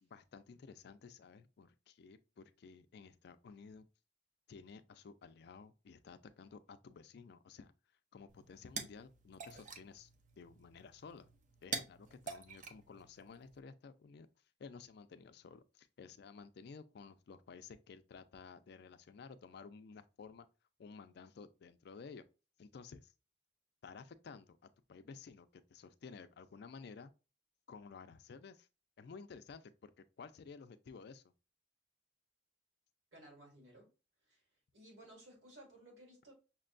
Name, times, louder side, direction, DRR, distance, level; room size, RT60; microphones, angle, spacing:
voice 1, 0.0-3.9 4.5-7.7 8.1-10.1 10.4-11.3 11.6-14.3 14.6-20.5 20.8-22.2 22.6-23.1 23.8-24.6 24.9-27.1 27.7-28.7 29.0-31.2, left 5 dB, 60° left, 0.4 m, -54 dB
sound 1, 8.3-13.6, right 4 dB, 45° right, 0.5 m, -47 dB
voice 2, 33.1-33.9 34.2-34.4 34.7-36.3, right 1 dB, 90° right, 1.9 m, -58 dB
5.9 x 2.2 x 2.4 m
head